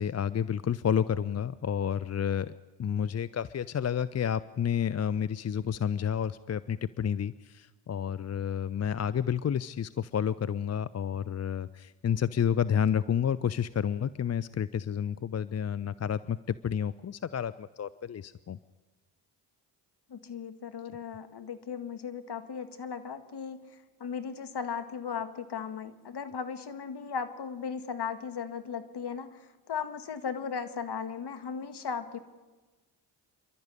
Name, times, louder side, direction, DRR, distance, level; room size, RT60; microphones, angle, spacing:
voice 1, 0.0-2.5 2.8-18.6, left 8 dB, 30° left, 17 dB, 0.6 m, -30 dB
voice 2, 20.1-23.6 24.0-29.4 29.7-32.2, left 6 dB, 50° left, 10 dB, 2.0 m, -37 dB
28.0 x 12.0 x 9.8 m, 1.2 s
supercardioid pair, 50°, 50 cm